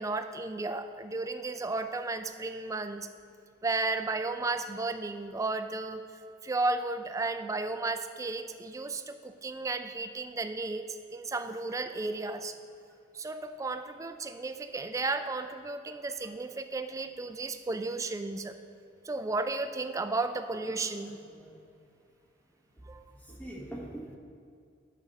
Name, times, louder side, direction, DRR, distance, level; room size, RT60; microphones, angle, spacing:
voice 1, 0.0-3.1 3.6-6.0 6.4-12.6 13.1-18.5 19.0-21.1 22.9-23.0, right 3 dB, 15° right, 9 dB, 0.3 m, -33 dB
voice 2, 20.4-20.8 21.3-21.6 23.2-24.2, right 1 dB, 10° left, -1 dB, 1.0 m, -44 dB
8.4 x 6.6 x 4.1 m, 2.3 s
head